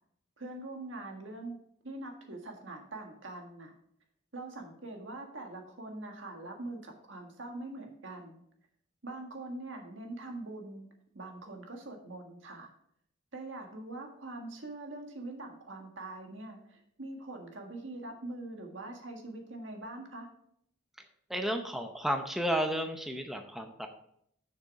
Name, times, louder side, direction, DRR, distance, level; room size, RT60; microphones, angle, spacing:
voice 1, 0.4-1.6 1.8-3.7 4.3-8.4 9.0-10.9 11.1-12.7 13.3-20.3, right 2 dB, 80° right, 2 dB, 1.7 m, -43 dB
voice 2, 21.3-23.9, equal, ahead, 5 dB, 0.6 m, -32 dB
6.8 x 6.4 x 4.7 m, 0.69 s
head